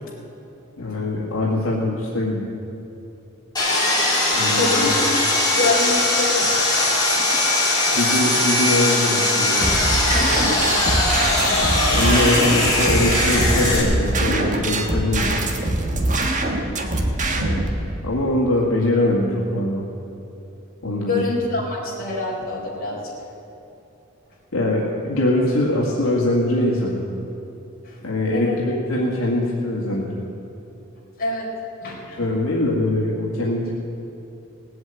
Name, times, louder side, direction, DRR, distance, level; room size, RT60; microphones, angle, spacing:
voice 1, 0.8-2.5 4.3-4.7 7.9-9.7 11.9-15.5 17.3-17.6 18.0-19.8 20.8-21.2 24.5-27.0 28.0-30.3 32.1-33.8, left 1 dB, 75° left, -4 dB, 2.1 m, -22 dB
Sawing, 3.6-13.8, left 2 dB, 20° left, 3.4 m, -20 dB
voice 2, 4.6-4.9 5.3-6.5 10.1-10.6 16.7-16.8 18.5-18.6 21.1-23.0 27.8-28.6 31.2-31.5 31.8-32.3, left 3 dB, 45° left, -4 dB, 4.1 m, -26 dB
sound 1, 9.6-17.7, right 2 dB, 35° right, 1.5 m, -23 dB
18.5 x 7.9 x 9.0 m, 2.9 s
head